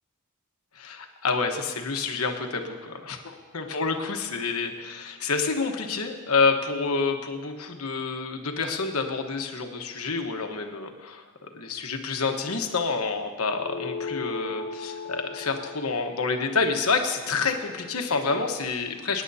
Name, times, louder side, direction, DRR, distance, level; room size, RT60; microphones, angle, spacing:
voice 1, 0.8-19.2, left 4 dB, 70° left, 4 dB, 1.2 m, -28 dB
sound 1, 13.6-18.4, left 5 dB, 40° left, 0.8 m, -38 dB
24.5 x 9.9 x 2.8 m, 1.4 s
head